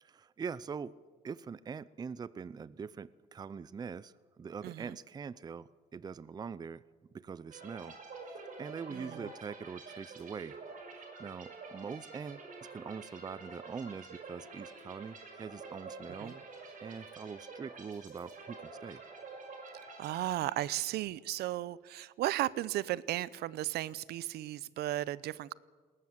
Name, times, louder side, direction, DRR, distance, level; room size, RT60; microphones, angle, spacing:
voice 1, 0.0-0.9 1.2-6.8 7.1-8.0 8.2-10.6 10.9-16.4 16.8-19.0, right 6 dB, 25° right, 0.5 m, -43 dB
voice 2, 4.6-5.0 8.9-9.3 16.2-16.3 20.0-25.5, right 14 dB, 75° right, 0.7 m, -35 dB
sound 1, 7.5-21.1, right 4 dB, 50° right, 6.2 m, -48 dB
20.5 x 18.0 x 8.0 m
cardioid pair, 110°, 17 cm